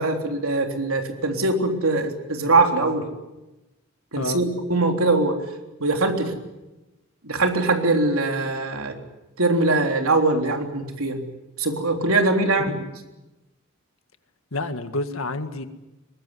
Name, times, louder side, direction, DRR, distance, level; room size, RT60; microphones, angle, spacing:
voice 1, 0.0-3.1 4.1-5.4 5.8-6.3 7.2-9.0 9.4-11.2 11.6-12.8, right 2 dB, 85° right, 4 dB, 3.5 m, -22 dB
voice 2, 14.5-15.6, left 2 dB, 75° left, 9 dB, 1.9 m, -29 dB
23.0 x 20.5 x 9.6 m, 1.0 s
head